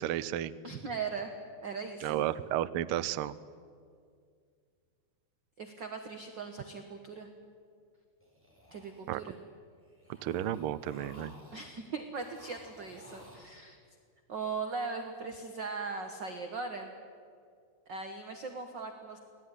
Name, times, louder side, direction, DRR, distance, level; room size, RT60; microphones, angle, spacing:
voice 1, 0.0-0.5 2.0-3.3 9.1-9.2 10.2-11.3, right 12 dB, 80° right, 15 dB, 1.2 m, -32 dB
voice 2, 0.6-1.3 1.6-2.2 5.6-7.3 8.7-9.4 11.5-13.8 14.3-16.9 17.9-19.2, right 4 dB, 45° right, 5 dB, 1.8 m, -39 dB
sound 1, 8.2-9.4 9.8-11.8 12.1-13.4, left 1 dB, 5° right, 6.3 m, -56 dB
25.5 x 18.0 x 9.9 m, 2.2 s
omnidirectional pair, 3.3 m